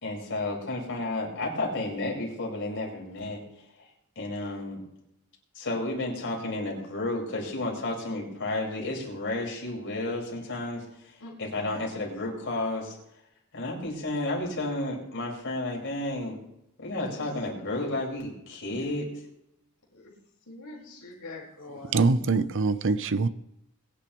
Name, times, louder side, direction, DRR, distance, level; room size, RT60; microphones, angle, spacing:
voice 1, 0.0-3.4 3.8-3.9 4.2-4.8 5.6-13.0 13.5-16.4 16.8-19.2, left 2 dB, 55° left, 5.1 m, -32 dB
voice 2, 17.1-17.4 19.9-20.1 20.5-22.2, left 2 dB, 80° left, 4.5 m, -45 dB
voice 3, 21.9-23.3, right 4 dB, 60° right, 0.7 m, -23 dB
22.5 x 10.5 x 3.1 m
head